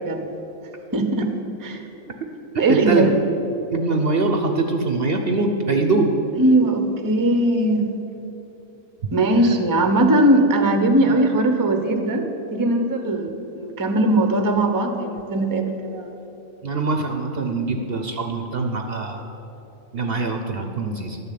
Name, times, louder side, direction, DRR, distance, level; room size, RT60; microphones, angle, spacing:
voice 1, 0.9-1.3 1.6-1.8 2.6-3.1 6.4-7.9 9.1-16.1, right 1 dB, 20° right, 5 dB, 0.7 m, -19 dB
voice 2, 2.7-3.1 3.7-6.1 16.6-19.2 19.9-21.2, right 3 dB, 50° right, 4 dB, 0.9 m, -23 dB
12.0 x 6.8 x 8.4 m, 3.0 s
omnidirectional pair, 1.4 m